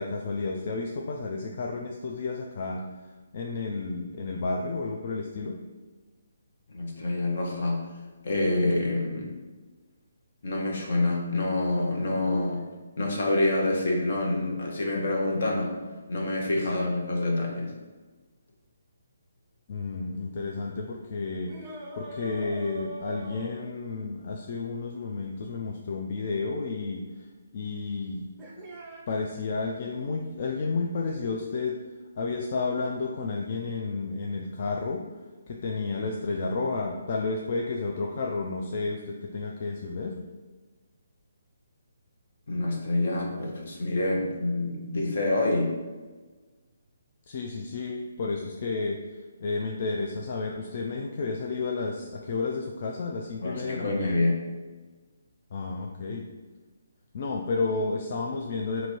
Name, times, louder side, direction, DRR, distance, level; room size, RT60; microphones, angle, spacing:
voice 1, 0.0-2.8 3.3-5.5 19.7-27.0 27.5-28.3 29.1-31.7 32.2-35.0 35.5-40.1 47.3-49.0 49.4-54.2 55.5-56.2 57.1-58.9, left 3 dB, 40° left, 0 dB, 0.3 m, -31 dB
voice 2, 6.7-7.8 8.2-9.3 10.4-12.7 13.0-15.8 16.1-17.7 42.5-45.7 53.4-54.4, left 2 dB, 60° left, -1 dB, 0.8 m, -27 dB
sound 1, 21.5-24.0 26.6-26.7 28.4-29.0, right 2 dB, 15° right, 0.5 m, -41 dB
3.0 x 2.6 x 4.2 m, 1.3 s
hypercardioid pair, 170°, 0 cm